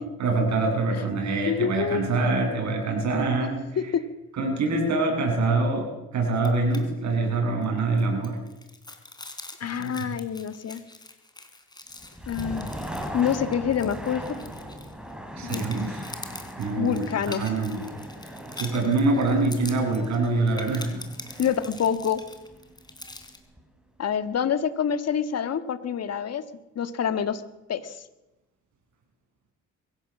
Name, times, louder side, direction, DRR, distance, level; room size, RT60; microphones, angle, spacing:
voice 1, 0.2-3.8 4.4-8.4 9.8-10.1 15.3-16.1 16.6-17.8 18.6-21.0 21.3-21.4, right 3 dB, 65° right, 1 dB, 7.7 m, -25 dB
voice 2, 1.5-2.0 3.8-4.0 9.6-10.8 12.3-12.7 13.1-14.3 15.4-15.7 16.8-17.4 21.4-22.2 24.0-26.4 26.8-27.4 27.7-28.0, left 8 dB, 55° left, 11 dB, 1.8 m, -26 dB
sound 1, 6.4-6.8 7.1-7.2 7.6-15.1 15.5-23.4, left 2 dB, 15° left, 3.7 m, -44 dB
sound 2, 11.9-23.8, equal, 5° right, 4.5 m, -40 dB
22.5 x 16.0 x 7.4 m, 0.98 s
cardioid pair, 90°, 30 cm